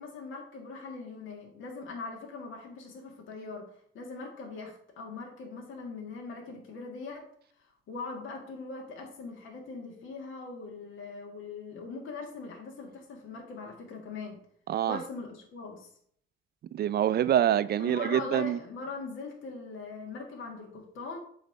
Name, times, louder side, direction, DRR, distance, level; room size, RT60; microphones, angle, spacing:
voice 1, 0.0-7.3 7.6-14.4 14.9-15.9 17.8-21.2, left 4 dB, 65° left, 1.7 m, -41 dB
voice 2, 14.7-15.0 16.7-18.6, right 10 dB, 50° right, 0.4 m, -26 dB
7.9 x 3.3 x 6.4 m
cardioid pair, 105°, 21 cm